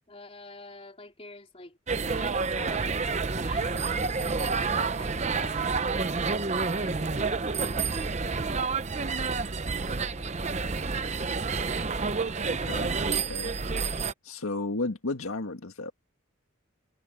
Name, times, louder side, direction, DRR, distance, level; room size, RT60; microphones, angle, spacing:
voice 1, 0.1-4.1 4.8-9.1 9.8-11.3, left 2 dB, 30° left, 4.0 m, -49 dB
sound 1, 1.9-14.1, right 4 dB, 35° right, 0.7 m, -29 dB
voice 2, 12.4-13.5 14.2-15.9, left 2 dB, 85° left, 1.8 m, -34 dB
head